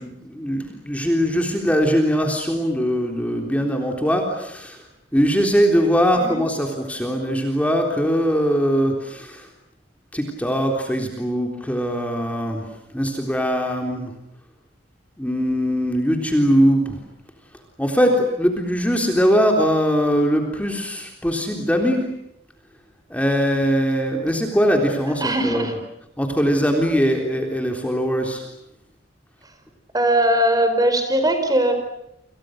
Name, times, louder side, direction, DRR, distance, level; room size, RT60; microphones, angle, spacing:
voice 1, 0.0-4.8 5.1-9.5 10.1-14.1 15.2-17.0 17.8-22.0 23.1-25.7 26.2-28.4, equal, 10° left, 2 dB, 3.6 m, -21 dB
voice 2, 25.2-25.7 29.9-31.7, right 1 dB, 20° right, 7 dB, 5.0 m, -20 dB
30.0 x 28.0 x 6.6 m, 0.82 s
head